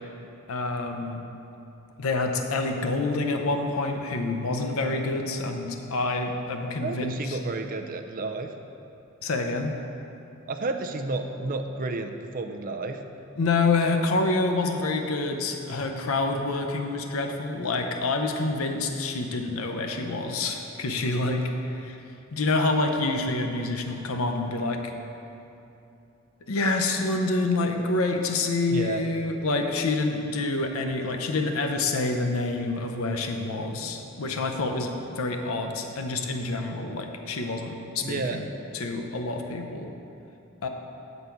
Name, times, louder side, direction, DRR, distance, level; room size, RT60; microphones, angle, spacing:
voice 1, 0.5-1.2 2.0-7.4 9.2-9.7 13.4-22.0 22.3-24.8 26.5-38.4 38.7-39.9 40.6-40.7, left 3 dB, 85° left, 4 dB, 0.7 m, -27 dB
voice 2, 6.8-8.5 10.5-13.0 28.7-29.0 38.0-38.4, right 3 dB, 40° right, 5 dB, 0.5 m, -31 dB
8.9 x 4.0 x 6.9 m, 2.8 s
head